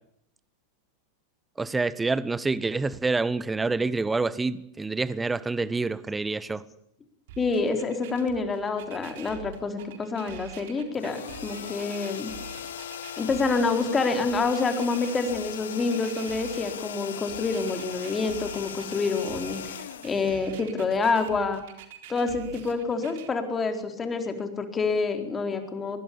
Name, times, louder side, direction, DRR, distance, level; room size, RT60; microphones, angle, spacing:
voice 1, 1.6-6.6, right 3 dB, 10° right, 1.2 m, -27 dB
sound 1, 7.3-23.3, right 8 dB, 55° right, 3.9 m, -45 dB
voice 2, 7.4-12.3 13.2-19.6 20.0-21.6 22.1-26.0, left 4 dB, 15° left, 4.2 m, -27 dB
sound 2, 10.9-20.9, left 10 dB, 60° left, 1.4 m, -39 dB
24.5 x 22.0 x 7.2 m
figure-of-eight pair, 90°, 0 cm